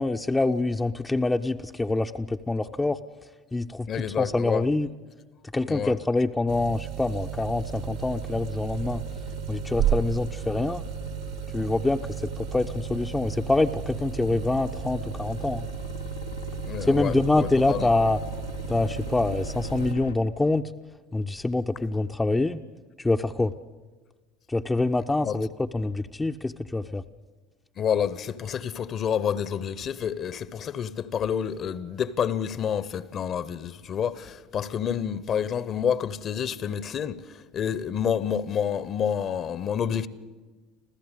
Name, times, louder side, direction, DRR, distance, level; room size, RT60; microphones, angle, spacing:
voice 1, 0.0-3.0 3.5-3.9 4.2-4.9 5.5-9.0 9.5-10.9 11.5-12.0 12.5-15.7 16.9-18.2 18.7-20.6 21.1-22.6 23.0-23.5 24.5-27.0, left 2 dB, 10° left, 0.6 m, -25 dB
voice 2, 3.9-4.6 5.7-6.0 16.6-17.9 25.2-25.3 27.8-37.2 37.5-40.1, left 8 dB, 40° left, 0.9 m, -28 dB
sound 1, 6.5-19.9, right 12 dB, 55° right, 1.2 m, -34 dB
sound 2, 7.2-20.1, left 6 dB, 80° left, 0.8 m, -40 dB
26.5 x 15.0 x 8.3 m
figure-of-eight pair, 65°, 0 cm